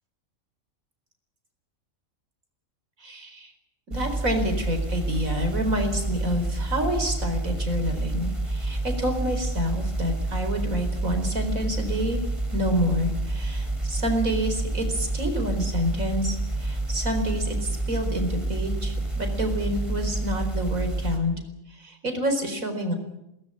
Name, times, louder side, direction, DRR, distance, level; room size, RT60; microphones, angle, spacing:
voice 1, 3.0-3.5 3.9-12.2 12.5-21.4 21.8-22.9, equal, 85° right, 6 dB, 4.8 m, -28 dB
sound 1, 3.9-21.2, right 2 dB, 20° right, 3.6 m, -28 dB
22.0 x 19.5 x 9.8 m, 0.86 s
omnidirectional pair, 1.4 m